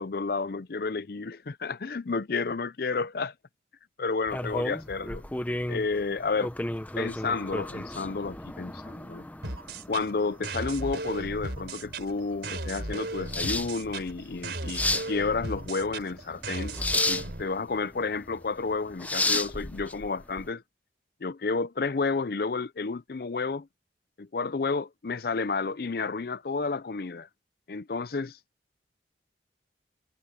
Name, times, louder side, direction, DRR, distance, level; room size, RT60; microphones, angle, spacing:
voice 1, 0.0-1.4 1.6-3.3 4.0-5.2 5.7-6.5 7.0-9.3 9.9-14.8 15.1-16.8 17.0-20.6 21.2-23.7 24.2-27.3 27.7-28.4, left 4 dB, 55° left, 0.5 m, -31 dB
sound 1, 4.3-20.5, left 2 dB, 10° left, 0.7 m, -33 dB
sound 2, 9.4-17.4, right 2 dB, 75° right, 3.8 m, -36 dB
head